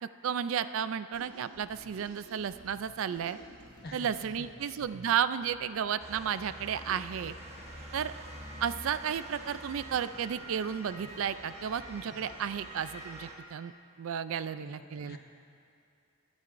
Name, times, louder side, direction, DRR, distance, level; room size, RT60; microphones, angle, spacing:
voice 1, 0.0-3.4 3.9-7.3 7.9-8.1 8.6-13.7 14.0-15.2, right 8 dB, 60° right, 13 dB, 0.3 m, -33 dB
sound 1, 1.1-12.8, right 1 dB, 85° right, 1.8 m, -55 dB
voice 2, 3.8-4.6 14.3-15.2, left 1 dB, 45° left, 1 dB, 1.1 m, -48 dB
Motor vehicle (road) / Siren, 6.0-13.3, right 1 dB, 30° right, 1.3 m, -46 dB
23.5 x 9.6 x 2.6 m, 2.6 s
head